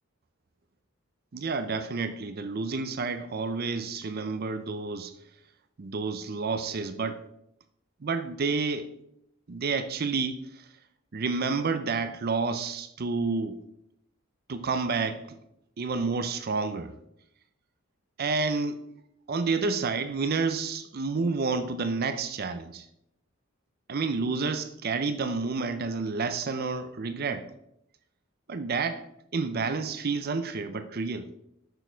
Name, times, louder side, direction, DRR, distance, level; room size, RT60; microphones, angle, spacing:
voice 1, 1.3-5.1 5.8-7.2 8.0-8.9 9.5-10.7 11.1-13.6 14.5-15.4 15.8-16.9 18.2-18.9 19.3-22.9 23.9-27.5 28.5-31.3, right 4 dB, 50° right, 0.5 m, -30 dB
6.8 x 6.2 x 4.5 m
head